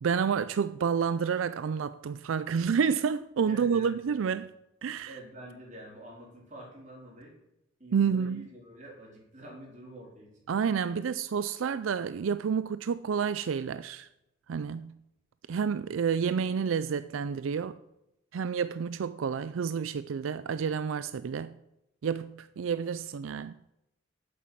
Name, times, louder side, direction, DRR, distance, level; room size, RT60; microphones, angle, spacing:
voice 1, 0.0-4.5 4.8-5.2 7.9-8.5 10.5-14.1 14.5-14.9 15.5-17.8 18.3-21.6 22.0-23.5, right 6 dB, 85° right, 0.4 m, -29 dB
voice 2, 3.4-4.2 5.0-7.3 7.8-10.7 10.9-11.0, right 1 dB, 35° right, 4.1 m, -47 dB
8.5 x 7.6 x 8.5 m
head